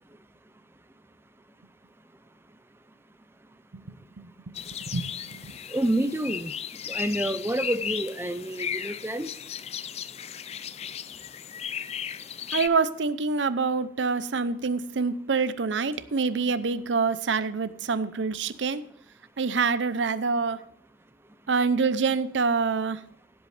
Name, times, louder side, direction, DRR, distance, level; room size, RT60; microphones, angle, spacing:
voice 1, 3.7-4.5 4.9-5.5 12.5-18.8 19.4-20.6 21.5-23.0, right 4 dB, 90° right, 14 dB, 0.7 m, -26 dB
sound 1, 4.5-12.7, left 8 dB, 35° left, 0.4 m, -35 dB
voice 2, 5.7-6.5 6.9-9.3, right 1 dB, 15° right, 11 dB, 0.6 m, -28 dB
17.0 x 7.9 x 3.3 m, 0.66 s
head